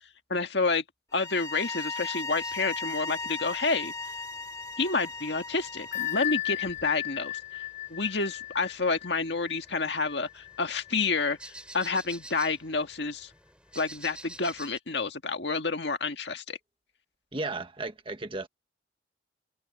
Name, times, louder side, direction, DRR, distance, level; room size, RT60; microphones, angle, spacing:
voice 1, 0.3-0.8 1.1-3.9 4.8-7.6 7.9-13.3 13.8-16.6, left 4 dB, 65° left, 1.9 m, -29 dB
sound 1, 1.1-6.3, left 3 dB, 20° left, 2.9 m, -37 dB
sound 2, 2.4-14.8, right 1 dB, 5° right, 5.2 m, -52 dB
Bell, 5.9-11.4, left 15 dB, 40° left, 0.8 m, -35 dB
voice 2, 17.3-18.5, right 2 dB, 30° right, 1.5 m, -34 dB
head